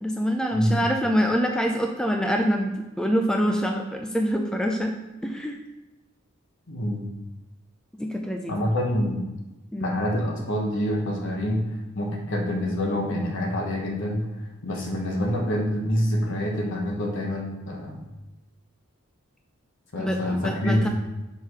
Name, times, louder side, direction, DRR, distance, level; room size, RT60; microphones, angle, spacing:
voice 1, 0.0-4.9 5.2-5.6 8.0-8.5 9.7-10.0 20.0-20.9, equal, 5° left, 2 dB, 0.4 m, -25 dB
voice 2, 6.7-7.0 8.5-9.2 9.8-14.3 14.6-18.1 19.9-20.9, equal, 60° left, 0 dB, 1.4 m, -26 dB
5.6 x 4.9 x 5.6 m, 1.0 s
head